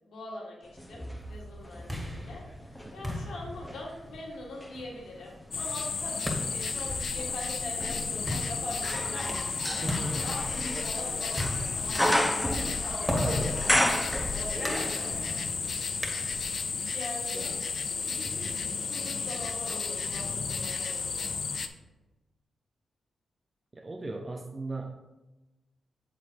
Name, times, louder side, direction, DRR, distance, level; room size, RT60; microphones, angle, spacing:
voice 1, 0.0-2.4 2.9-9.8 10.2-12.0 12.5-15.4 16.9-17.4 17.9-21.3, left 2 dB, 80° left, -3 dB, 1.8 m, -43 dB
sound 1, 0.8-3.0 3.5-14.8 15.1-15.2, equal, 10° left, 1.0 m, -33 dB
sound 2, 1.5-16.7, left 1 dB, 10° right, 2.0 m, -37 dB
sound 3, 5.5-21.7, left 5 dB, 65° left, 0.5 m, -33 dB
voice 2, 9.8-10.4 17.3-17.6 18.2-18.3 23.7-24.9, right 3 dB, 35° right, 2 dB, 0.6 m, -38 dB
7.3 x 3.8 x 4.6 m, 1.1 s
supercardioid pair, 50°, 0 cm